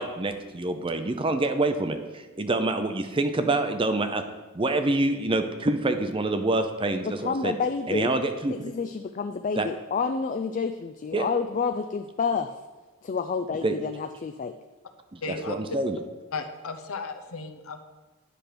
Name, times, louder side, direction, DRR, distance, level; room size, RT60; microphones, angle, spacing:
voice 1, 0.0-4.2 4.5-7.5 7.9-8.5 9.6-9.7 11.1-11.3 13.6-13.8 15.1-16.0, right 2 dB, 25° right, 8 dB, 0.5 m, -26 dB
voice 2, 7.1-8.1 8.5-12.5 13.0-14.5, left 5 dB, 35° left, 7 dB, 0.3 m, -29 dB
voice 3, 15.2-15.6 16.3-17.8, left 4 dB, 70° left, 7 dB, 0.8 m, -35 dB
10.0 x 5.9 x 5.1 m, 1.2 s
head